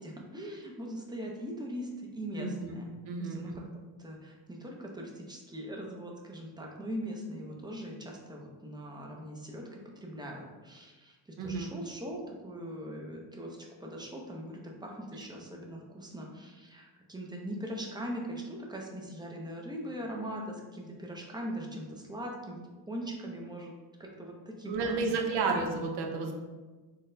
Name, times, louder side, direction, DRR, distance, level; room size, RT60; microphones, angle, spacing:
voice 1, 0.0-2.9 3.3-3.6 4.0-22.6 22.9-23.7 24.0-25.2 25.5-25.7, equal, 10° right, -1 dB, 0.5 m, -41 dB
voice 2, 2.4-2.8 3.1-3.6 11.4-11.7 24.6-26.3, right 4 dB, 60° right, 2 dB, 0.6 m, -32 dB
3.8 x 2.1 x 2.6 m, 1.3 s
cardioid pair, 95°, 45 cm